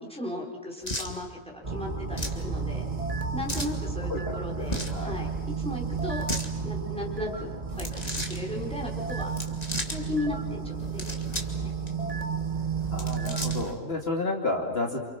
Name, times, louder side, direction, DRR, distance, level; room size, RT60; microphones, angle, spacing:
voice 1, 0.0-2.9 3.3-5.3 5.6-6.2 6.6-8.0 8.3-9.3 9.8-11.7, left 2 dB, 5° left, -2 dB, 5.1 m, -36 dB
sound 1, 0.8-1.1 2.1-2.4 3.5-3.8 4.6-5.0 6.1-6.5 7.7-8.4 9.3-10.0 10.8-11.6 11.9-12.0 12.8-13.7, left 1 dB, 30° left, 2.7 m, -34 dB
sound 2, 1.6-13.7, right 5 dB, 30° right, 1.6 m, -32 dB
voice 2, 4.1-5.2 12.9-15.0, left 2 dB, 50° left, 1 dB, 3.0 m, -31 dB
29.0 x 28.5 x 6.1 m, 1.3 s
omnidirectional pair, 1.3 m